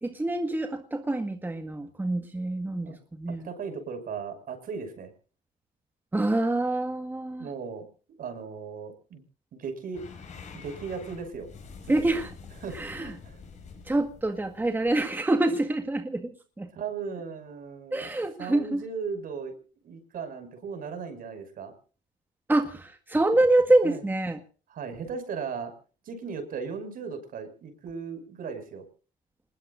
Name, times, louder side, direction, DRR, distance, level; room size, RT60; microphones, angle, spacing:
voice 1, 0.0-3.5 6.1-7.5 11.9-12.3 12.7-13.1 13.8-16.7 17.9-18.9 22.5-24.4, right 2 dB, 10° right, 6 dB, 1.7 m, -26 dB
voice 2, 3.4-5.1 7.4-7.9 8.2-9.2 9.5-10.0 10.5-11.5 11.8-12.1 12.6-13.4 16.7-18.1 18.4-19.5 19.8-21.7 23.8-24.0 24.7-25.7 26.0-28.8, right 5 dB, 55° right, 8 dB, 6.1 m, -37 dB
sound 1, 9.9-15.4, left 5 dB, 45° left, 6.8 m, -47 dB
27.0 x 20.5 x 2.6 m, 0.39 s
cardioid pair, 110°, 17 cm